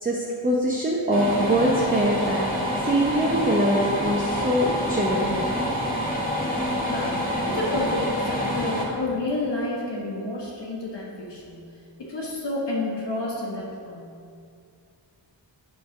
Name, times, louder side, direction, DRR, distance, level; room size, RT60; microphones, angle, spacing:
voice 1, 0.0-5.3, equal, 20° right, -4 dB, 0.8 m, -23 dB
sound 1, 1.1-8.9, equal, 20° left, 1.4 m, -27 dB
voice 2, 6.8-11.7 12.0-14.2, left 2 dB, 65° left, -3 dB, 1.6 m, -30 dB
8.4 x 3.8 x 5.9 m, 2.4 s
wide cardioid pair, 100°, 45 cm